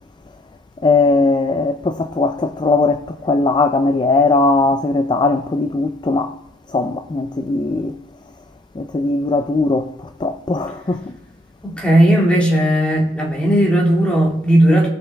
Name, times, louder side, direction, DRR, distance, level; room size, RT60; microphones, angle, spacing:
voice 1, 0.8-6.3 6.7-8.0 8.8-9.9 10.2-11.0, left 3 dB, 25° left, 0.3 m, -18 dB
voice 2, 11.6-14.9, right 1 dB, 5° left, 2.0 m, -15 dB
17.5 x 5.9 x 3.4 m
head